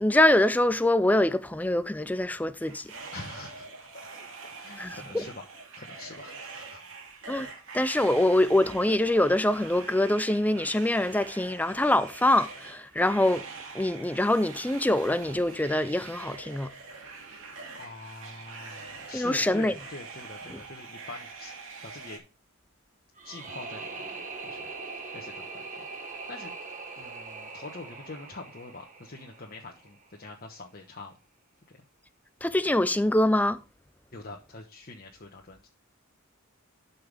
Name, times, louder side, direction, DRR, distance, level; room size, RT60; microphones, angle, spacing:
voice 1, 0.0-2.9 4.8-5.2 7.3-13.4 13.7-16.7 19.1-19.7 20.5-20.6 32.4-33.6, left 1 dB, 5° left, 0.5 m, -24 dB
sound 1, 2.6-22.2, right 4 dB, 65° right, 2.5 m, -44 dB
voice 2, 3.1-5.4 5.8-7.0 17.3-17.4 17.7-21.5 21.8-22.2 23.2-24.7 25.1-31.1 31.7-31.8 34.1-35.7, left 3 dB, 45° left, 1.2 m, -45 dB
sound 2, 23.2-30.1, right 4 dB, 35° right, 1.5 m, -41 dB
12.0 x 5.7 x 3.5 m
head